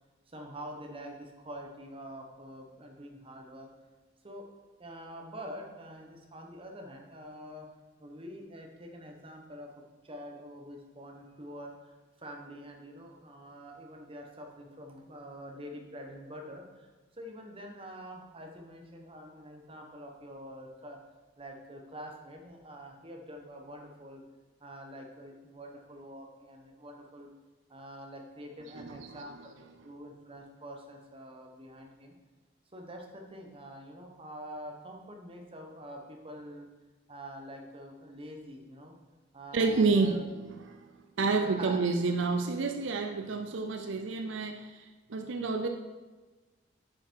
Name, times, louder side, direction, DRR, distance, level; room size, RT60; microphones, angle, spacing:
voice 1, 0.3-3.7 4.2-4.5 4.8-7.7 8.0-21.0 21.4-24.2 24.6-27.3 27.7-29.5 29.8-32.1 32.7-36.7 37.1-38.9 39.3-40.2 41.4-41.8, equal, 30° right, 2 dB, 1.2 m, -46 dB
voice 2, 28.7-29.2 39.5-40.3 40.7-45.7, right 4 dB, 75° right, 5 dB, 0.6 m, -29 dB
8.8 x 5.8 x 4.7 m, 1.3 s
head